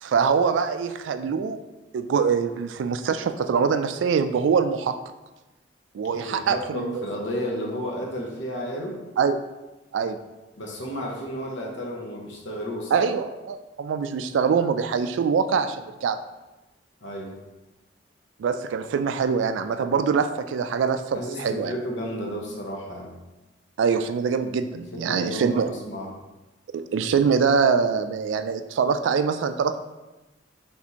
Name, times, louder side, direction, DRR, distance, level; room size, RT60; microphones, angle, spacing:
voice 1, 0.0-1.6 1.9-5.0 5.9-7.0 9.2-9.4 9.9-10.2 12.9-16.2 18.4-21.7 23.8-25.7 26.7-29.8, right 6 dB, 80° right, 9 dB, 0.3 m, -24 dB
voice 2, 6.1-9.0 10.6-13.1 17.0-17.4 21.1-23.2 24.9-26.1, equal, 75° left, -1 dB, 0.9 m, -32 dB
4.1 x 3.5 x 2.9 m, 1.1 s
head